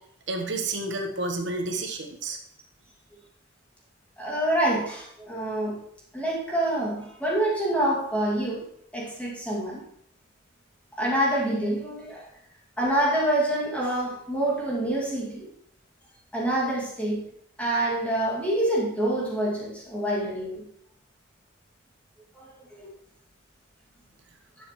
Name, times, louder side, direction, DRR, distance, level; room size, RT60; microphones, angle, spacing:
voice 1, 0.3-2.4, right 2 dB, 65° right, 3 dB, 1.2 m, -30 dB
voice 2, 4.2-5.8 6.1-8.7 8.9-9.8 11.0-12.3 12.8-15.5 16.3-17.2 17.6-20.7 22.3-22.5 22.8-22.9, right 1 dB, 5° left, -5 dB, 2.2 m, -26 dB
11.5 x 7.4 x 3.1 m, 0.67 s
head